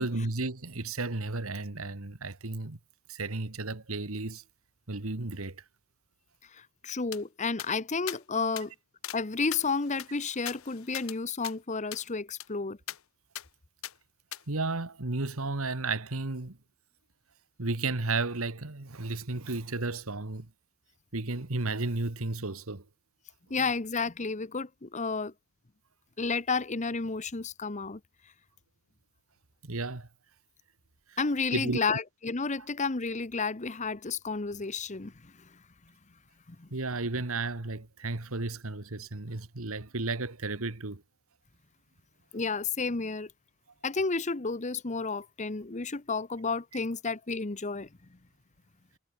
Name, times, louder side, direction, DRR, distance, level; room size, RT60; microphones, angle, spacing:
voice 1, 0.0-2.8 3.1-4.4 4.9-5.6 14.5-16.6 17.6-20.5 21.1-22.8 29.6-30.1 31.1-31.2 31.5-31.8 36.7-41.0, right 3 dB, 70° right, 1.7 m, -33 dB
voice 2, 6.5-8.7 9.1-12.8 23.5-25.3 26.2-28.0 31.2-35.3 36.5-36.7 42.3-43.3 43.8-47.9, left 4 dB, 35° left, 1.0 m, -31 dB
sound 1, 7.1-7.2 7.6-7.7 8.1-8.2 8.6-8.7 9.0-9.2 9.5-11.2 11.4-11.5 11.9-12.0 12.4-12.5 12.9-13.0 13.3-13.5 13.8-13.9 14.3-14.4, left 12 dB, 70° left, 1.0 m, -40 dB
head